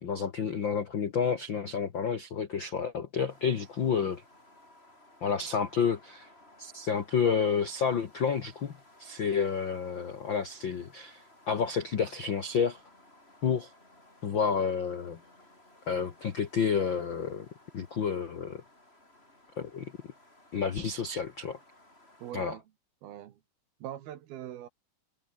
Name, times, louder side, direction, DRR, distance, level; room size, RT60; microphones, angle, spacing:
voice 1, 0.0-4.2 5.2-6.3 6.6-8.7 9.0-12.8 13.4-13.7 14.2-15.2 15.9-17.4 17.7-18.6 19.6-19.9 20.5-21.6 22.3-22.5, left 6 dB, 80° left, 1.0 m, -30 dB
sound 1, 3.3-22.3, left 1 dB, 15° left, 6.6 m, -59 dB
voice 2, 22.2-22.6 23.0-23.4 23.8-24.7, right 11 dB, 80° right, 3.4 m, -42 dB
omnidirectional pair, 4.5 m